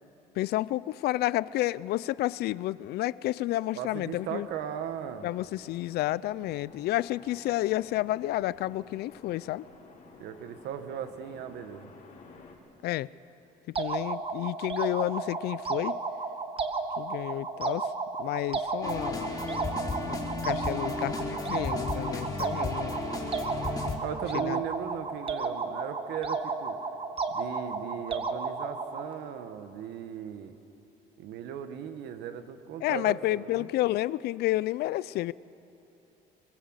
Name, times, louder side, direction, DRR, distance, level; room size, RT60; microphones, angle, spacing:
voice 1, 0.3-4.5 5.2-9.7 12.8-13.1 13.7-16.0 17.0-17.9 18.2-19.3 20.0-20.2 20.4-23.0 24.3-24.6 32.8-35.3, left 16 dB, 75° left, 20 dB, 0.5 m, -30 dB
voice 2, 3.8-5.3 10.2-11.9 24.0-26.8 27.3-30.6 31.2-33.7, right 9 dB, 80° right, 8 dB, 1.6 m, -37 dB
sound 1, 4.1-12.6, left 3 dB, 50° left, 4.6 m, -54 dB
sound 2, 13.8-29.1, right 4 dB, 30° right, 1.5 m, -33 dB
sound 3, 18.8-24.0, left 3 dB, 25° left, 3.9 m, -34 dB
21.5 x 21.5 x 8.1 m, 2.9 s
cardioid pair, 110°, 17 cm